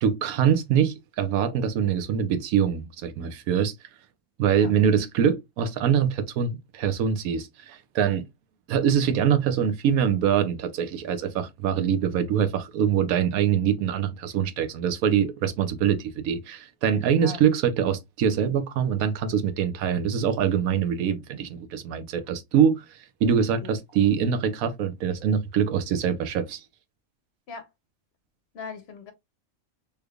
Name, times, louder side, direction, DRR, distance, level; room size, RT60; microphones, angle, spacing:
voice 1, 0.0-3.7 4.4-8.3 8.7-22.8 23.2-26.6, right 8 dB, 85° right, 1.1 m, -24 dB
voice 2, 17.0-17.4 23.6-23.8 27.5-27.7 28.5-29.1, left 4 dB, 60° left, 0.8 m, -39 dB
3.4 x 3.3 x 2.3 m
omnidirectional pair, 1.4 m